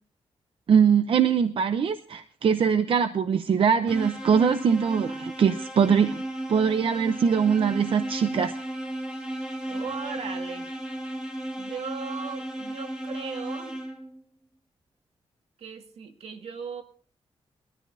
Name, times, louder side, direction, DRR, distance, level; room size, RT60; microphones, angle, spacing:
voice 1, 0.7-6.2 6.5-8.5, right 7 dB, 60° right, 9 dB, 0.8 m, -22 dB
sound 1, 3.9-14.2, right 1 dB, 10° right, 2.4 m, -35 dB
voice 2, 9.7-10.7 11.6-13.8 15.6-16.8, right 5 dB, 80° right, 5 dB, 2.0 m, -37 dB
22.0 x 13.5 x 2.7 m, 0.42 s
wide cardioid pair, 140°, 10 cm